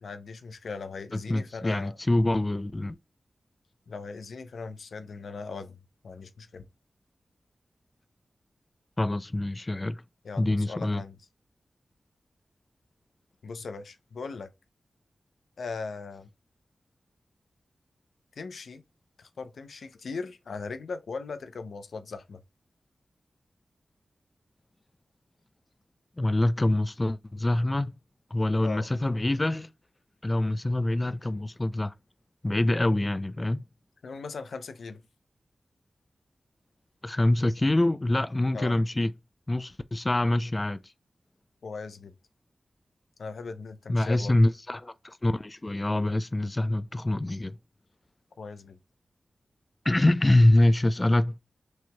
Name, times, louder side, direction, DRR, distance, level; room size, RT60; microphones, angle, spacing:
voice 1, 0.0-2.0 3.9-5.8 6.0-6.7 10.2-11.2 13.4-14.5 15.6-16.3 18.4-18.8 19.2-22.4 28.6-28.9 34.0-35.0 38.5-38.8 41.6-42.1 43.2-44.4 48.4-48.8, left 4 dB, 85° left, 0.6 m, -39 dB
voice 2, 1.1-3.0 9.0-10.0 10.4-11.0 26.2-27.9 28.3-29.7 30.2-31.9 32.4-33.6 37.0-39.1 39.5-40.8 43.9-47.6 49.8-51.4, left 1 dB, 30° left, 0.3 m, -25 dB
6.2 x 3.0 x 2.2 m
cardioid pair, 50°, 0 cm